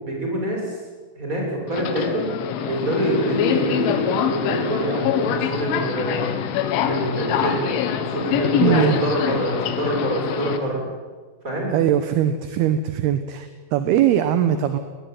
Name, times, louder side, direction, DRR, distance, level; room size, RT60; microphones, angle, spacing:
voice 1, 0.0-0.8 1.2-2.3 2.7-6.3 6.8-7.7 8.0-10.8 11.4-11.8, right 1 dB, 15° right, -1 dB, 7.5 m, -25 dB
Subway metro underground, 1.7-10.6, left 9 dB, 80° left, 4.0 m, -24 dB
voice 2, 8.6-9.0 11.7-14.8, right 10 dB, 70° right, 9 dB, 2.6 m, -21 dB
20.5 x 20.0 x 9.4 m, 1.5 s
omnidirectional pair, 5.5 m